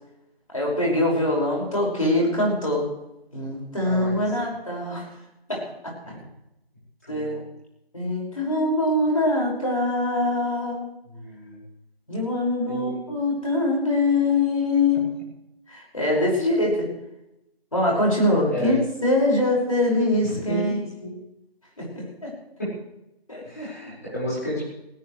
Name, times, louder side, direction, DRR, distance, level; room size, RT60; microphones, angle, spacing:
voice 1, 0.5-2.9 3.3-5.1 5.5-5.9 7.1-7.4 7.9-10.8 12.1-15.1 15.7-16.9 17.7-20.8 21.8-22.3 23.3-23.9, left 2 dB, 35° left, -3 dB, 5.8 m, -23 dB
voice 2, 3.8-4.2 6.0-6.2 7.0-7.4 11.1-11.6 12.7-13.0 18.5-18.8 20.2-20.7 21.0-21.1 22.6-22.7 23.4-24.7, equal, 15° left, -8 dB, 4.9 m, -32 dB
19.5 x 18.0 x 3.3 m, 0.86 s
figure-of-eight pair, 180°, 31 cm